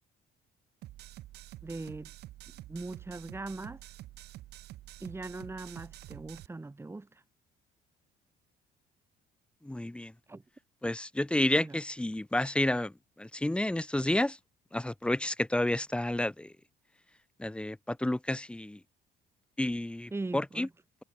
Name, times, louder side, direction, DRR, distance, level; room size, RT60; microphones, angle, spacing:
sound 1, 0.8-6.5, right 15 dB, 75° right, 5.3 m, -48 dB
voice 1, 1.6-2.1 2.5-3.8 5.0-7.2 10.3-10.4 11.6-11.8 20.1-20.7, right 3 dB, 15° right, 3.5 m, -40 dB
voice 2, 9.6-10.1 10.8-14.4 14.7-16.5 17.4-18.8 19.6-20.7, left 1 dB, 5° left, 1.8 m, -30 dB
cardioid pair, 110°, 17 cm